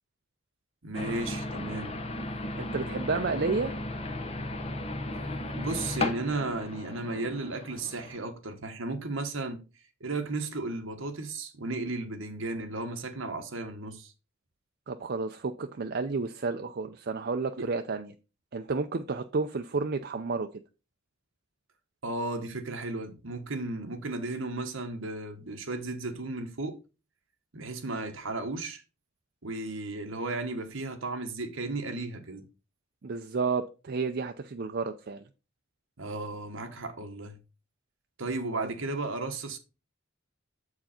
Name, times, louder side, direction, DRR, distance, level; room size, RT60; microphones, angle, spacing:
voice 1, 0.8-2.0 5.5-9.6 10.0-14.1 17.6-17.7 22.0-26.8 27.5-28.8 29.4-32.4 36.0-37.4 38.2-39.6, right 2 dB, 65° right, 1.2 m, -34 dB
sound 1, 0.9-8.2, left 1 dB, 30° left, 0.9 m, -35 dB
voice 2, 2.6-3.8 14.9-18.1 18.5-20.5 33.0-35.3, right 4 dB, 50° right, 0.5 m, -31 dB
7.6 x 4.7 x 4.3 m
head